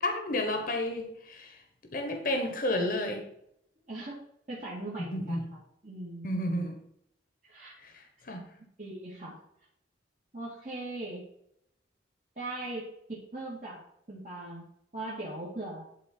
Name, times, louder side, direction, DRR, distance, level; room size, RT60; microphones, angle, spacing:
voice 1, 0.0-1.6 1.9-3.2 5.1-5.4 6.2-6.8 7.8-8.5, left 1 dB, 45° left, 4 dB, 1.2 m, -31 dB
voice 2, 3.9-4.2 4.5-6.3 7.4-7.7 8.8-9.4 10.3-11.3 12.4-14.7 14.9-15.9, right 2 dB, 40° right, -7 dB, 2.1 m, -40 dB
11.5 x 4.2 x 4.5 m, 0.74 s
head